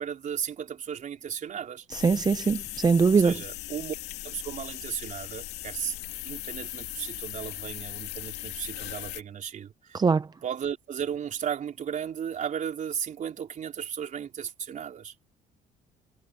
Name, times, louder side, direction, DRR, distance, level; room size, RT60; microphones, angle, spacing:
voice 1, 0.0-1.9 3.1-3.9 4.2-6.0 6.2-10.0 10.4-15.3, right 8 dB, 50° right, 3.7 m, -35 dB
sound 1, 1.9-9.2, left 16 dB, 90° left, 2.4 m, -38 dB
voice 2, 1.9-3.3 9.9-10.3, right 5 dB, 25° right, 0.6 m, -22 dB
cardioid pair, 110°, 17 cm